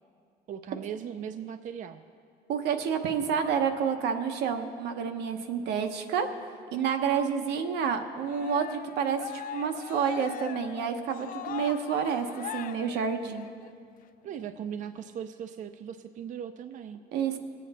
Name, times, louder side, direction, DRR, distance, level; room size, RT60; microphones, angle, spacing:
voice 1, 0.5-2.0 14.2-17.0, right 8 dB, 50° right, 9 dB, 0.5 m, -38 dB
voice 2, 2.5-6.3 6.7-12.3 12.5-13.4 17.1-17.4, right 7 dB, 80° right, 6 dB, 1.0 m, -29 dB
Cheering, 8.2-13.7, left 10 dB, 55° left, 0.4 m, -41 dB
20.0 x 8.3 x 4.2 m, 2.3 s
cardioid pair, 110°, 17 cm